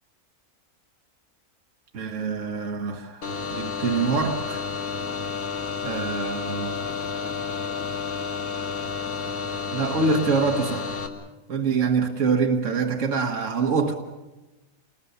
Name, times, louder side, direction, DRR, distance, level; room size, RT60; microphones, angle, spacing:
voice 1, 1.9-4.6 5.8-6.7 9.7-10.9 11.5-13.9, right 4 dB, 60° right, 3 dB, 1.8 m, -25 dB
sound 1, 3.2-11.1, left 5 dB, 85° left, 2.5 m, -31 dB
28.0 x 20.5 x 6.9 m, 1.1 s
omnidirectional pair, 1.5 m